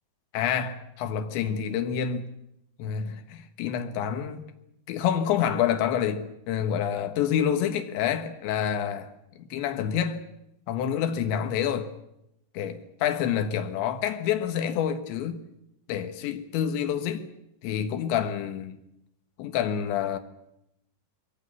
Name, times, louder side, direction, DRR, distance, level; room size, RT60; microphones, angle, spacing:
voice 1, 0.3-2.3 2.8-4.5 4.9-9.1 9.4-10.3 10.7-11.9 12.6-15.4 15.9-17.3 17.6-18.8 19.4-20.2, left 9 dB, 85° left, 3.7 m, -28 dB
22.5 x 18.5 x 9.6 m
omnidirectional pair, 5.1 m